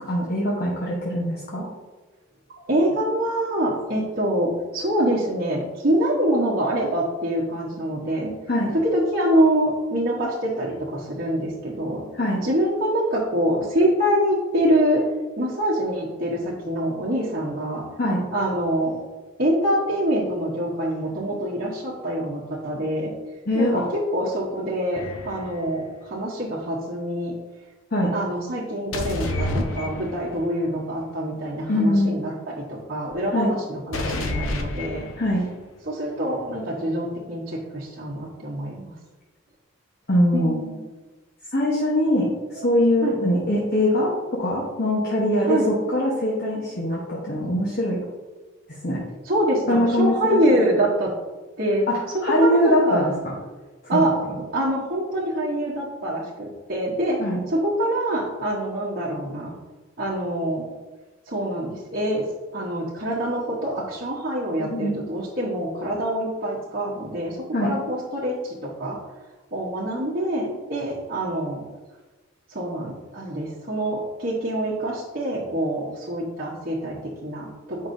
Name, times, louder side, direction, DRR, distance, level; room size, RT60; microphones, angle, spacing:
voice 1, 0.1-1.6 8.5-8.7 12.2-12.4 18.0-18.2 23.5-23.8 27.9-28.1 31.7-32.2 33.3-33.5 35.2-35.4 40.1-40.5 41.5-48.0 48.8-49.0 49.7-50.4 51.9-53.1 53.8-54.4 57.2-57.4 64.6-65.0 67.5-67.7, left 1 dB, 50° left, -4 dB, 1.1 m, -22 dB
voice 2, 2.5-8.3 8.8-12.1 12.4-15.0 15.4-17.8 18.3-19.0 19.4-23.1 23.5-27.3 28.1-35.0 35.9-38.9 40.3-40.8 42.6-42.7 43.0-43.2 45.5-45.7 49.2-51.1 51.6-51.9 52.1-53.1 53.9-54.1 54.5-57.2 57.5-59.5 60.0-60.6 61.3-62.2 62.5-69.0 69.5-71.6 72.5-77.9, right 1 dB, 50° right, -7 dB, 1.1 m, -25 dB
sound 1, 24.9-25.6 28.9-30.5 33.9-35.5, left 2 dB, 90° left, 0.8 m, -29 dB
7.9 x 5.4 x 2.7 m, 1.2 s
head